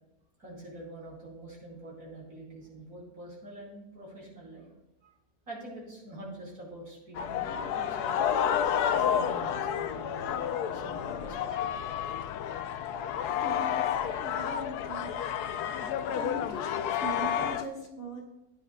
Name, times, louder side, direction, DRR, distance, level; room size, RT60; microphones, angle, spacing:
voice 1, 0.4-4.7 5.0-5.1 5.5-8.3 8.9-11.7 13.9-14.1 14.3-14.8 15.3-15.4, right 1 dB, 80° right, -5 dB, 5.0 m, -45 dB
sound 1, 7.1-17.6, left 9 dB, 85° left, 1.1 m, -30 dB
voice 2, 13.4-15.2 16.1-18.2, right 1 dB, 40° left, 1 dB, 1.7 m, -40 dB
17.0 x 10.0 x 2.2 m, 0.95 s
omnidirectional pair, 1.6 m